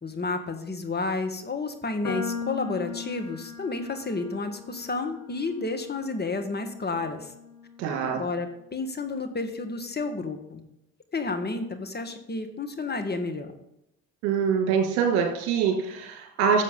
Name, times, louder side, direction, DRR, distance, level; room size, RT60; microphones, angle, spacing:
voice 1, 0.0-7.3 8.0-10.6 11.1-13.5, left 3 dB, 25° left, 5 dB, 1.6 m, -31 dB
sound 1, 2.0-8.4, left 5 dB, 40° left, 2.2 m, -39 dB
voice 2, 7.8-8.2 14.2-16.6, right 6 dB, 70° right, 3 dB, 2.5 m, -24 dB
13.0 x 7.5 x 3.9 m, 0.84 s
hypercardioid pair, 55°, 40 cm